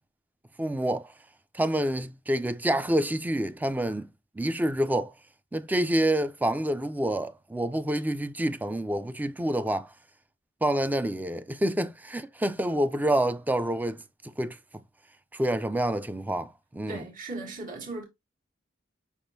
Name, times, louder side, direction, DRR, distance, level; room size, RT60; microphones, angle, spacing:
voice 1, 0.6-1.1 1.5-4.1 4.4-5.1 5.5-9.9 10.6-14.6 15.3-17.0, right 1 dB, 10° right, 0.3 m, -27 dB
voice 2, 16.9-18.0, right 2 dB, 45° right, 1.5 m, -37 dB
5.7 x 3.6 x 2.6 m
head